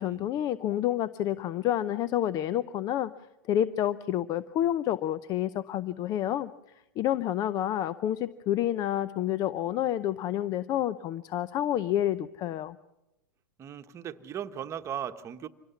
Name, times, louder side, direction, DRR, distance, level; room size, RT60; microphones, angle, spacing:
voice 1, 0.0-3.1 3.5-6.5 7.0-12.8, left 12 dB, 35° left, 16 dB, 0.7 m, -29 dB
voice 2, 13.6-15.5, right 9 dB, 25° right, 8 dB, 1.3 m, -37 dB
26.0 x 18.0 x 7.1 m, 0.96 s
hypercardioid pair, 110°, 11 cm